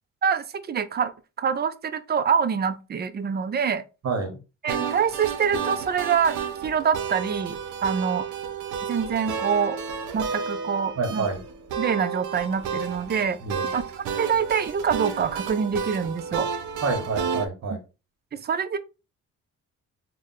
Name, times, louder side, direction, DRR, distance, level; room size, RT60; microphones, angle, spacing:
voice 1, 0.2-1.1 1.4-3.8 4.6-6.4 6.6-7.6 7.8-8.3 8.8-9.8 10.1-11.3 11.8-13.4 13.7-13.8 14.2-16.5 18.3-18.8, right 7 dB, 35° right, 0.4 m, -25 dB
voice 2, 4.0-4.4 11.0-11.4 13.4-13.7 16.8-17.8, right 4 dB, 55° right, 1.2 m, -27 dB
sound 1, 4.7-17.5, right 6 dB, 85° right, 0.7 m, -32 dB
3.3 x 2.2 x 3.9 m
cardioid pair, 90°, 30 cm